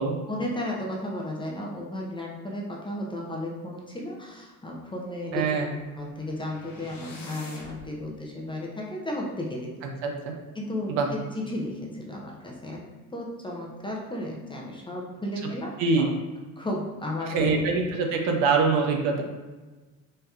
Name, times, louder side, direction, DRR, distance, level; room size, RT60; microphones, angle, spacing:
voice 1, 0.3-9.7 10.5-12.8 13.1-16.1 16.6-17.6, left 1 dB, 10° left, -2 dB, 0.7 m, -34 dB
voice 2, 5.3-5.7 10.0-10.3 10.9-11.1 15.8-16.1 17.3-19.2, right 4 dB, 55° right, 2 dB, 0.7 m, -24 dB
sound 1, 5.7-7.9, left 2 dB, 65° left, 1.4 m, -45 dB
4.2 x 3.2 x 2.4 m, 1.2 s
figure-of-eight pair, 65°, 44 cm